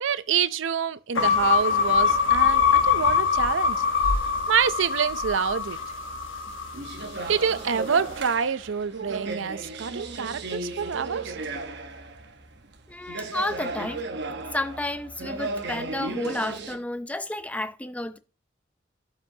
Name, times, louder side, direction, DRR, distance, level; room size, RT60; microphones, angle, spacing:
voice 1, 0.0-3.8 4.5-5.8 7.3-11.4, right 7 dB, 75° right, 0.5 m, -27 dB
sound 1, 1.2-7.5, left 6 dB, 80° left, 1.2 m, -23 dB
sound 2, 1.2-16.8, right 3 dB, 55° right, 1.0 m, -36 dB
voice 2, 12.9-14.0 14.5-18.2, left 1 dB, 5° left, 0.4 m, -31 dB
12.0 x 5.1 x 2.7 m
head